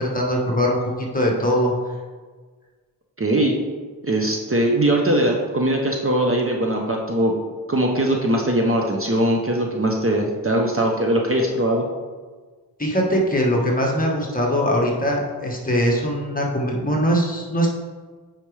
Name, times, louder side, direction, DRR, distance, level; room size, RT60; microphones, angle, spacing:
voice 1, 0.0-1.7 12.8-17.7, equal, 20° left, -2 dB, 1.4 m, -21 dB
voice 2, 3.2-3.5 4.0-7.3 7.7-11.8, right 1 dB, 35° right, 0 dB, 0.8 m, -21 dB
8.6 x 5.1 x 3.3 m, 1.4 s
wide cardioid pair, 85°, 40 cm